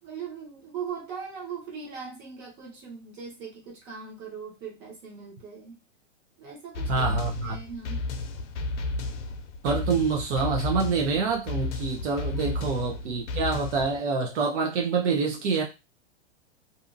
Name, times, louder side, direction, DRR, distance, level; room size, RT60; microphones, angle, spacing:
voice 1, 0.0-5.8 6.4-8.0 12.3-12.5, right 6 dB, 25° right, 1.1 m, -40 dB
sound 1, 6.8-14.0, left 2 dB, 65° left, 0.6 m, -33 dB
voice 2, 6.9-7.6 9.6-15.6, right 4 dB, 70° right, 0.7 m, -26 dB
2.7 x 2.5 x 2.5 m
supercardioid pair, 160°, 37 cm